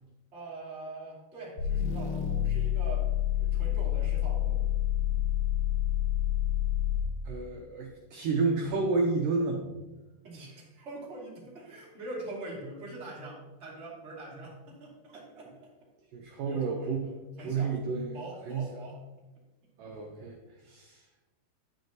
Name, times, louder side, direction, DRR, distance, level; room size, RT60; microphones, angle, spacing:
voice 1, 0.3-3.1 3.4-4.7 5.1-5.2 10.2-15.7 16.4-17.7 18.1-19.0, right 2 dB, 20° right, -5 dB, 2.1 m, -43 dB
sound 1, 1.6-7.2, left 11 dB, 70° left, 1.7 m, -28 dB
voice 2, 7.3-9.7 16.1-17.1 17.4-18.2 18.5-18.7 19.8-20.4 20.7-21.0, right 4 dB, 75° right, 1 dB, 2.1 m, -30 dB
10.5 x 9.2 x 2.9 m, 1.1 s
omnidirectional pair, 4.7 m